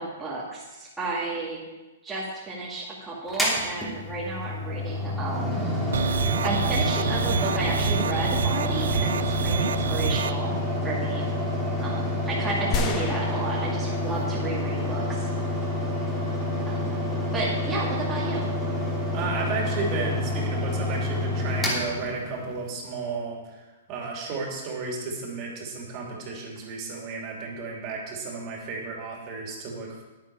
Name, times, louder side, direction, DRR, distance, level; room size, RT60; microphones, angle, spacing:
voice 1, 0.0-1.6 2.0-5.6 6.4-10.5 10.8-11.3 11.8-15.3 16.6-16.9 17.3-18.5, right 2 dB, 5° right, -7 dB, 2.2 m, -32 dB
Mechanical fan, 3.3-22.7, left 1 dB, 10° left, 2.9 m, -28 dB
sound 1, 5.9-10.3, right 7 dB, 80° right, 0.4 m, -27 dB
sound 2, 12.7-15.0, left 4 dB, 30° left, 1.1 m, -33 dB
voice 2, 18.9-30.0, right 4 dB, 35° right, -1 dB, 2.9 m, -33 dB
10.5 x 10.0 x 4.8 m, 1.1 s
hypercardioid pair, 140°, 0 cm